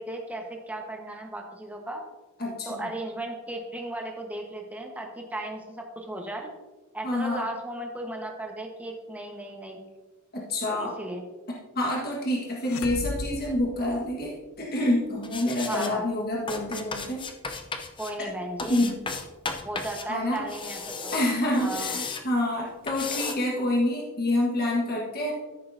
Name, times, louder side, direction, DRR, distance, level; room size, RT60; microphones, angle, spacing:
voice 1, 0.0-2.0 2.6-6.5 6.9-9.8 10.7-11.2 15.7-16.0 18.0-18.9 19.6-21.1 21.6-21.9, right 1 dB, 5° right, 1 dB, 1.3 m, -36 dB
voice 2, 2.4-2.9 7.0-7.5 10.3-10.9 11.7-17.2 18.7-19.0 20.1-20.4 21.1-25.3, left 1 dB, 45° left, -2 dB, 1.5 m, -27 dB
sound 1, 12.6-14.6, left 2 dB, 65° left, 0.6 m, -37 dB
sound 2, 15.2-15.9 16.5-18.1 18.6-20.1 20.3-22.2 22.9-23.3, left 4 dB, 25° left, 0.6 m, -34 dB
14.0 x 6.6 x 2.7 m, 1.2 s
head